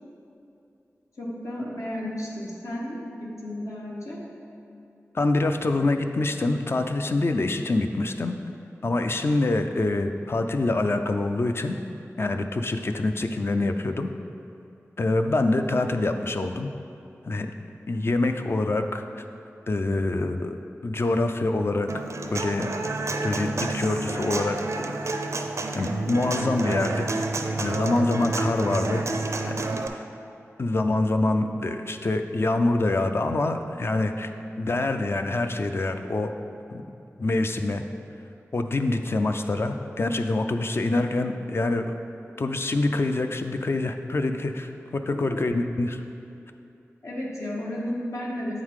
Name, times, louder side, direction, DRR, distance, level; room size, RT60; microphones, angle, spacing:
voice 1, 1.2-4.2 45.1-45.4 47.0-48.6, left 1 dB, 75° left, -4 dB, 1.3 m, -33 dB
voice 2, 5.1-8.4 8.8-11.8 12.2-14.1 15.0-16.7 17.2-17.5 17.9-19.0 19.7-20.6 20.8-21.9 22.3-22.7 23.2-24.8 25.1-25.3 25.7-27.1 27.6-29.0 29.5-29.6 29.9-30.0 30.6-34.3 34.6-36.3 36.7-36.8 37.2-37.8 38.5-41.9 42.4-46.0, left 2 dB, 50° left, 6 dB, 0.4 m, -25 dB
Human voice / Acoustic guitar, 21.9-29.9, right 3 dB, 65° right, 0.4 m, -29 dB
8.0 x 3.8 x 4.8 m, 2.7 s
wide cardioid pair, 70°, 5 cm